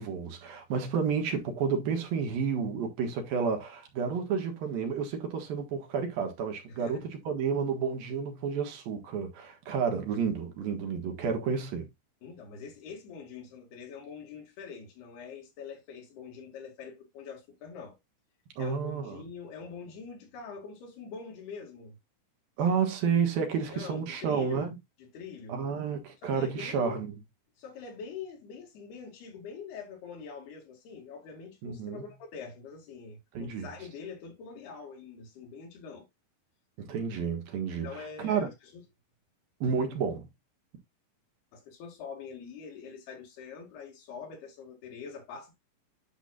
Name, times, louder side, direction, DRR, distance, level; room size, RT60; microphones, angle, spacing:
voice 1, 0.0-11.9 18.6-19.2 22.6-24.7 25.5-27.1 31.6-32.0 33.3-33.7 36.8-38.5 39.6-40.3, right 6 dB, 70° right, 3.1 m, -30 dB
voice 2, 6.7-7.1 12.2-18.0 18.6-22.0 23.7-25.6 26.2-27.0 27.6-36.1 37.8-38.8 41.5-45.6, left 5 dB, 90° left, 4.2 m, -44 dB
10.0 x 6.0 x 2.4 m
omnidirectional pair, 4.4 m